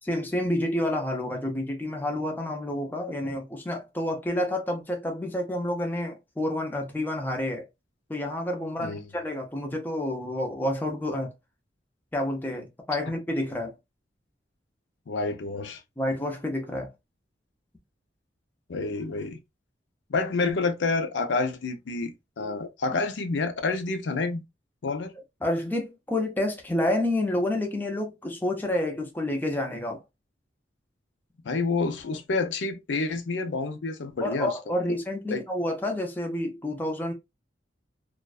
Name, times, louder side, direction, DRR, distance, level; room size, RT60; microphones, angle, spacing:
voice 1, 0.0-7.6 8.1-11.3 12.1-13.7 16.0-16.9 25.4-30.0 34.2-37.1, left 1 dB, 10° left, 0.5 m, -29 dB
voice 2, 15.1-15.8 18.7-19.4 20.1-24.4 24.8-25.1 31.4-34.8 35.3-35.4, left 3 dB, 80° left, 0.5 m, -28 dB
2.4 x 2.1 x 2.3 m
head